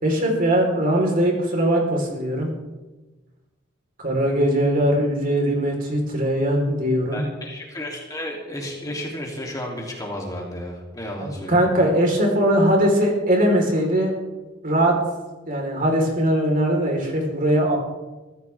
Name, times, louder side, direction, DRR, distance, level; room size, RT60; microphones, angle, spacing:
voice 1, 0.0-2.5 4.0-7.2 11.2-14.1 14.6-15.0 15.5-17.8, right 1 dB, 45° right, 0 dB, 4.4 m, -20 dB
voice 2, 7.1-11.6, left 1 dB, 20° left, -2 dB, 3.2 m, -32 dB
23.5 x 15.0 x 3.6 m, 1.2 s
head